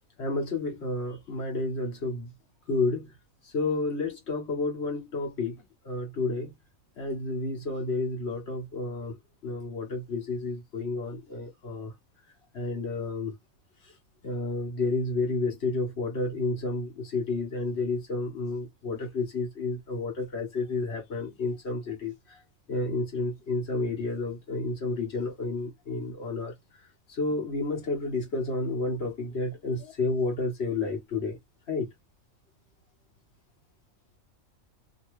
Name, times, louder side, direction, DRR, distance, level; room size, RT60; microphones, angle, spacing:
voice 1, 0.2-2.3 2.7-3.1 3.5-5.6 5.8-6.5 7.0-9.2 9.4-11.9 12.5-13.3 14.2-22.4 22.7-26.5 27.1-31.4 31.7-31.9, left 3 dB, 55° left, 1.3 m, -30 dB
2.8 x 2.6 x 3.0 m
omnidirectional pair, 1.4 m